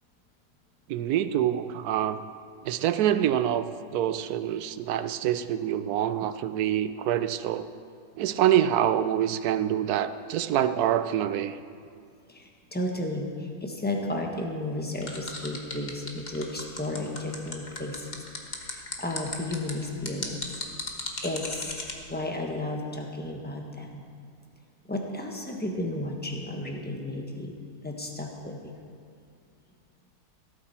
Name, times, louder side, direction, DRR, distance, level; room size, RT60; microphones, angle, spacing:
voice 1, 0.9-2.3 2.6-7.7 8.2-11.6, right 11 dB, 75° right, 12 dB, 1.1 m, -26 dB
voice 2, 12.3-18.1 18.6-20.6 21.2-21.7 22.1-24.0 24.9-27.5 27.8-28.7, left 1 dB, 5° left, 1 dB, 1.2 m, -33 dB
sound 1, 15.0-21.9, left 3 dB, 30° left, 1.3 m, -35 dB
16.0 x 13.5 x 4.3 m, 2.3 s
omnidirectional pair, 1.7 m